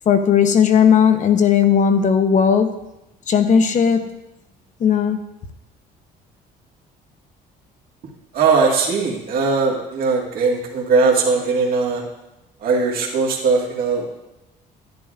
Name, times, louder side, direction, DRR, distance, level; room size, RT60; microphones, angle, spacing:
voice 1, 0.1-2.7 3.3-4.0 4.8-5.2, left 7 dB, 50° left, 8 dB, 0.9 m, -16 dB
voice 2, 8.3-12.0 12.6-14.1, right 4 dB, 60° right, -1 dB, 1.7 m, -19 dB
10.5 x 10.5 x 2.5 m, 0.94 s
cardioid pair, 110°, 17 cm